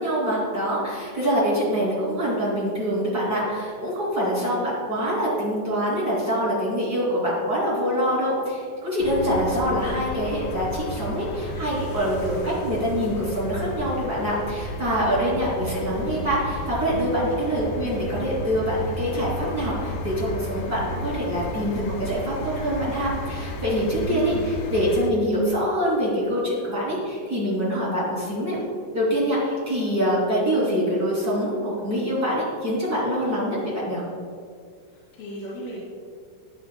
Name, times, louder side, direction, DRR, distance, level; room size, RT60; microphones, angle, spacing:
voice 1, 0.0-28.6 28.9-34.0, equal, 25° right, -7 dB, 2.3 m, -25 dB
sound 1, 9.0-25.1, left 1 dB, 85° left, 3.6 m, -33 dB
voice 2, 34.9-35.8, left 1 dB, 55° left, -11 dB, 4.7 m, -37 dB
19.5 x 8.7 x 2.3 m, 2.1 s
omnidirectional pair, 5.9 m